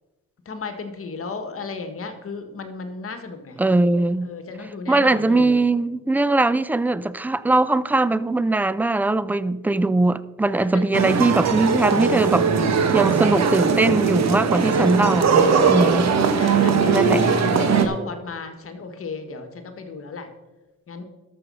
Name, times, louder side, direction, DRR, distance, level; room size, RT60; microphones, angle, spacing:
voice 1, 0.4-3.6 4.2-5.6 10.6-10.9 15.9-20.3 20.9-21.0, left 4 dB, 50° left, 1.6 m, -35 dB
voice 2, 3.6-4.3 4.9-16.1 16.9-17.3, right 2 dB, 5° right, 0.5 m, -21 dB
sound 1, 10.9-17.9, right 5 dB, 60° right, 1.4 m, -19 dB
13.0 x 6.6 x 5.5 m
cardioid pair, 90°, 30 cm